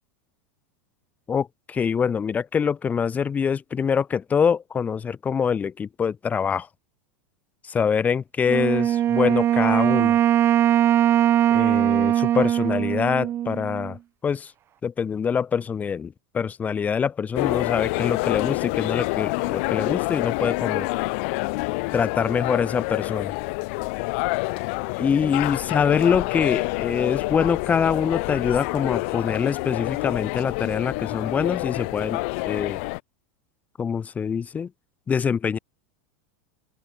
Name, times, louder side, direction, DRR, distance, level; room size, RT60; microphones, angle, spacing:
voice 1, 1.3-6.7 7.7-10.2 11.5-14.0 14.2-14.5 14.8-20.9 21.9-23.4 25.0-32.8 33.8-34.7 35.1-35.6, left 6 dB, 20° left, 1.5 m, -24 dB
Wind instrument woodwind instrument, 8.5-13.9, right 11 dB, 35° right, 3.7 m, -21 dB
sound 1, 17.4-33.0, left 29 dB, 60° left, 2.3 m, -27 dB
open air
supercardioid pair, 125°, 7 cm